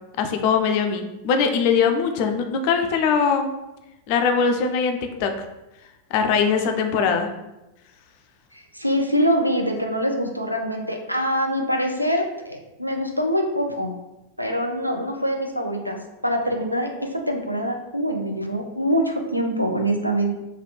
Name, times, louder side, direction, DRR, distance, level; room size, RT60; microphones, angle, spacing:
voice 1, 0.2-3.5 4.1-5.5 6.1-7.3, left 6 dB, 45° left, 5 dB, 0.4 m, -21 dB
voice 2, 8.5-13.9 14.4-20.3, equal, 90° right, 3 dB, 0.4 m, -24 dB
3.1 x 2.3 x 3.1 m, 0.96 s
figure-of-eight pair, 90°, 0 cm